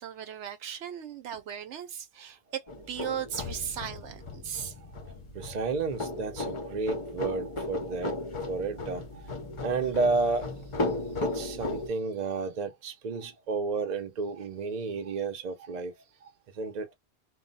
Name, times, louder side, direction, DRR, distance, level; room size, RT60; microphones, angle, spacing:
voice 1, 0.0-4.7, right 9 dB, 70° right, 0.9 m, -37 dB
sound 1, 2.7-11.9, left 2 dB, 40° left, 0.5 m, -36 dB
voice 2, 5.3-8.2 8.5-9.0 9.6-10.5 11.2-15.9 16.6-16.9, right 4 dB, 50° right, 0.6 m, -31 dB
2.2 x 2.1 x 3.8 m
omnidirectional pair, 1.3 m